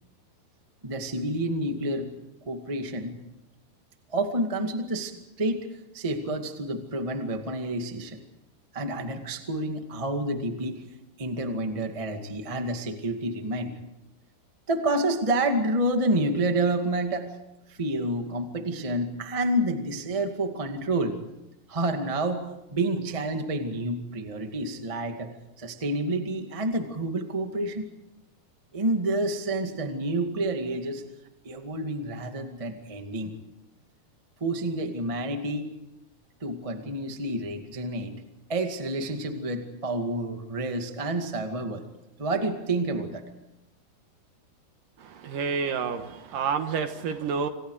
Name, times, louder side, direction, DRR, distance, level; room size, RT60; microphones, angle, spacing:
voice 1, 0.8-2.1 2.4-3.2 4.1-5.7 5.9-8.2 8.7-10.8 11.2-13.8 14.7-17.3 17.7-21.2 21.7-25.3 25.6-27.9 28.7-31.0 31.4-33.3 34.4-35.7 36.4-38.2 38.5-41.8 42.2-43.2, right 1 dB, 20° right, 5 dB, 0.8 m, -29 dB
voice 2, 45.0-47.5, right 6 dB, 65° right, 8 dB, 2.7 m, -29 dB
28.0 x 26.5 x 4.9 m, 0.89 s
omnidirectional pair, 4.7 m